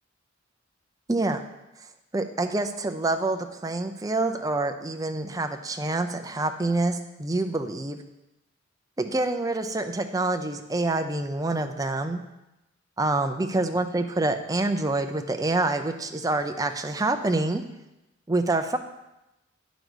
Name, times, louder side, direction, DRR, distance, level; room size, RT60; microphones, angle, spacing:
voice 1, 1.1-1.4 2.1-8.0 9.0-12.2 13.0-17.6 18.3-18.8, right 2 dB, 20° right, 6 dB, 0.6 m, -26 dB
9.5 x 5.2 x 6.2 m, 0.94 s
head